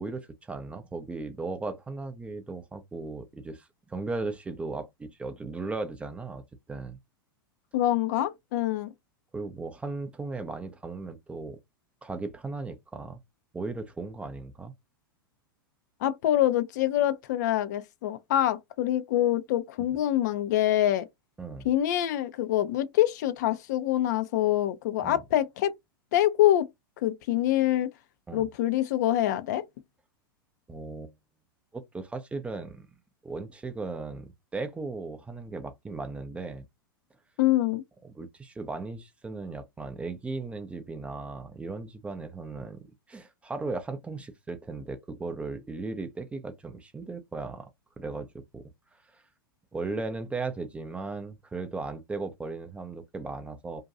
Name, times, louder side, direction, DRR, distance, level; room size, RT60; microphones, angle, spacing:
voice 1, 0.0-6.4 6.7-7.0 9.3-11.6 12.0-13.2 13.5-14.7 19.8-19.9 21.4-21.7 25.0-25.2 28.3-28.5 30.7-31.1 31.7-33.0 33.2-36.7 38.0-42.8 43.1-47.7 48.0-48.6 49.1-49.2 49.7-53.8, right 3 dB, 10° right, 0.4 m, -37 dB
voice 2, 7.7-8.9 16.0-21.1 21.6-25.7 26.1-26.7 27.0-27.9 28.3-29.7 37.4-37.8, left 13 dB, 50° left, 0.4 m, -25 dB
2.6 x 2.2 x 2.5 m
figure-of-eight pair, 90°, 12 cm